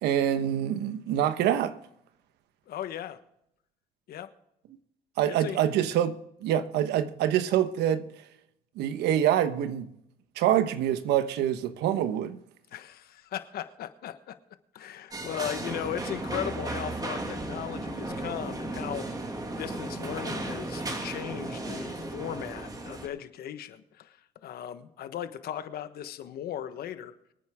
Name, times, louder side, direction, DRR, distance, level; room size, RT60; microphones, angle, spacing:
voice 1, 0.0-1.7 5.2-8.1 8.8-9.9 10.4-12.4, right 10 dB, 85° right, 1.2 m, -26 dB
voice 2, 2.7-3.2 4.1-4.3 5.3-5.6 12.7-14.4 14.7-19.1 19.5-24.2 24.4-27.1, left 10 dB, 65° left, 1.3 m, -37 dB
sound 1, 15.1-23.1, right 2 dB, 20° right, 2.4 m, -35 dB
25.0 x 9.3 x 3.7 m
cardioid pair, 110°, 17 cm